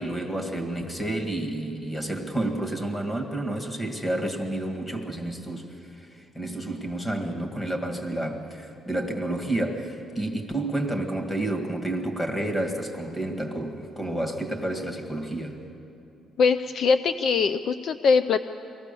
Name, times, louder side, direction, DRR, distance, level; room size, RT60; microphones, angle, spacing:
voice 1, 0.0-15.6, right 1 dB, 15° left, 4 dB, 1.9 m, -30 dB
voice 2, 16.4-18.4, left 5 dB, 55° left, 11 dB, 0.5 m, -22 dB
23.5 x 17.0 x 6.9 m, 2.9 s
cardioid pair, 145°, 0 cm